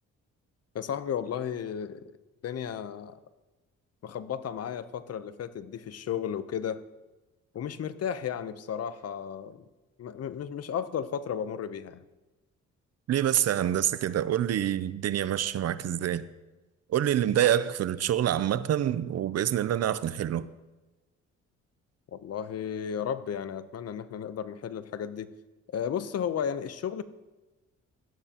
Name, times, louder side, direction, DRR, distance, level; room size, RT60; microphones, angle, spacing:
voice 1, 0.7-2.1 2.4-3.2 4.0-6.8 7.5-9.6 10.0-12.0 22.1-25.3 25.7-27.0, left 8 dB, 55° left, 0.8 m, -34 dB
voice 2, 13.1-16.3 16.9-20.5, right 11 dB, 55° right, 0.6 m, -26 dB
17.0 x 12.5 x 3.0 m
cardioid pair, 90°, 30 cm